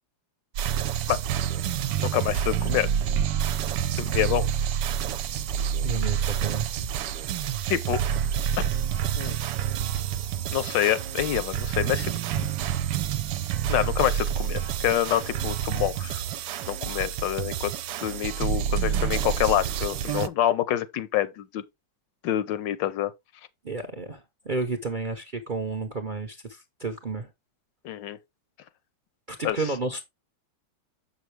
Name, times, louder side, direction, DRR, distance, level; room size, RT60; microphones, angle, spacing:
sound 1, 0.5-20.3, right 9 dB, 75° right, 1.1 m, -28 dB
voice 1, 2.0-2.9 4.0-4.5 7.7-8.0 8.6-8.7 9.2-9.4 10.5-12.1 13.7-16.2 16.7-17.7 18.0-21.6 22.2-23.1 27.8-28.2 29.4-29.6, left 12 dB, 80° left, 1.3 m, -26 dB
voice 2, 5.8-6.9 23.6-27.3 29.3-30.0, right 3 dB, 45° right, 0.6 m, -32 dB
7.0 x 6.1 x 3.2 m
omnidirectional pair, 2.0 m